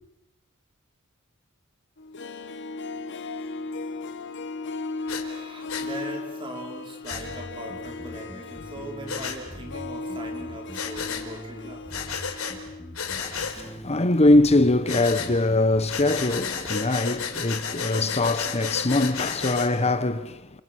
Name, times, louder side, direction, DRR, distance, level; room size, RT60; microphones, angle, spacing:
Harp, 2.0-13.0 13.3-13.4, left 3 dB, 55° left, 1.7 m, -36 dB
Breathing, 5.1-5.2 5.7-5.9 7.0-7.2 9.1-9.4 10.7-11.3 11.9-12.6 12.9-13.6 14.9-15.3 15.9-19.7, left 6 dB, 70° left, 4.2 m, -32 dB
voice 1, 5.2-12.0, right 1 dB, 25° right, 5.4 m, -40 dB
sound 1, 7.1-16.7, equal, 5° left, 4.9 m, -43 dB
voice 2, 13.1-20.6, left 2 dB, 30° left, 1.1 m, -22 dB
29.5 x 29.0 x 6.5 m
head